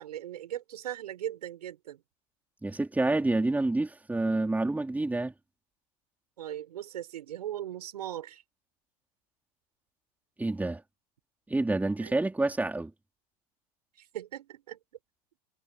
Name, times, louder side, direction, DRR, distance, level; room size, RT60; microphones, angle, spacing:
voice 1, 0.0-2.0 6.4-8.4 12.0-12.1 14.0-14.8, right 12 dB, 85° right, 6.5 m, -39 dB
voice 2, 2.6-5.3 10.4-10.8 11.5-12.9, right 2 dB, 10° right, 3.9 m, -28 dB
hypercardioid pair, 100°, 20 cm